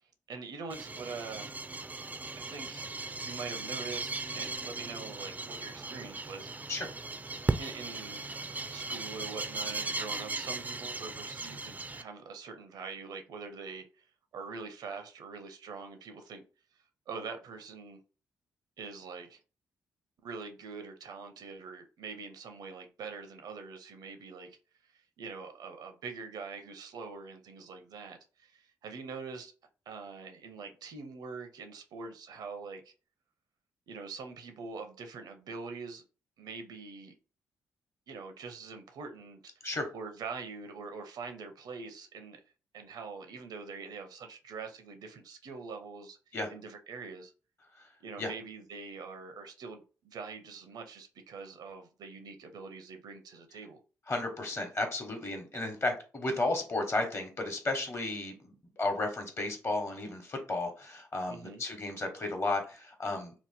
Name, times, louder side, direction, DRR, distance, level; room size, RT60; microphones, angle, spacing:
voice 1, 0.3-1.5 2.4-2.9 3.2-6.7 7.3-8.2 8.7-14.1 14.3-16.4 17.1-18.0 18.8-19.4 20.2-24.6 24.8-29.5 29.9-32.9 33.9-36.0 36.4-37.1 38.1-39.7 39.9-42.4 42.7-46.2 46.5-47.3 48.0-53.8 61.3-61.6, right 4 dB, 75° right, 0.6 m, -44 dB
sound 1, 0.7-12.0, right 3 dB, 20° right, 0.4 m, -37 dB
voice 2, 54.1-63.3, left 2 dB, 40° left, 1.1 m, -33 dB
2.9 x 2.0 x 3.4 m
supercardioid pair, 50°, 7 cm